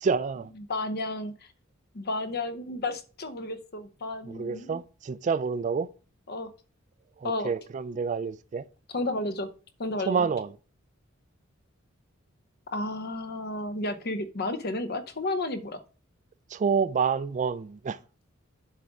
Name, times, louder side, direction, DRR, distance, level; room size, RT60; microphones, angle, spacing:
voice 1, 0.0-0.5 4.3-5.9 7.2-8.6 10.1-10.5 16.5-18.0, right 5 dB, 35° right, 0.3 m, -28 dB
voice 2, 0.7-1.3 1.9-4.8 6.3-6.5 7.2-7.5 8.9-9.5 9.8-10.3 12.7-15.8, left 2 dB, 50° left, 0.8 m, -32 dB
7.7 x 3.6 x 5.9 m
head